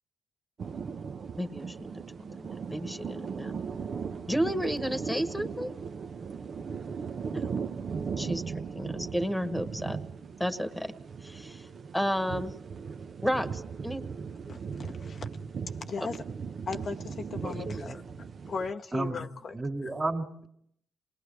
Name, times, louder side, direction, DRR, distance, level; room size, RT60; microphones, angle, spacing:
sound 1, 0.6-18.7, right 6 dB, 55° right, 0.9 m, -38 dB
voice 1, 1.4-2.0 2.7-3.5 4.3-5.7 7.3-7.4 8.2-8.4 8.7-10.0 10.4-10.9 11.2-11.7 11.9-12.5 13.2-14.0, equal, 5° left, 1.4 m, -31 dB
voice 2, 14.5-15.3 15.8-16.2 16.7-19.6, left 5 dB, 50° left, 0.9 m, -37 dB
voice 3, 17.4-18.0 18.9-19.2 19.5-20.5, right 2 dB, 30° right, 2.4 m, -33 dB
27.5 x 20.0 x 4.7 m
supercardioid pair, 65°, 0 cm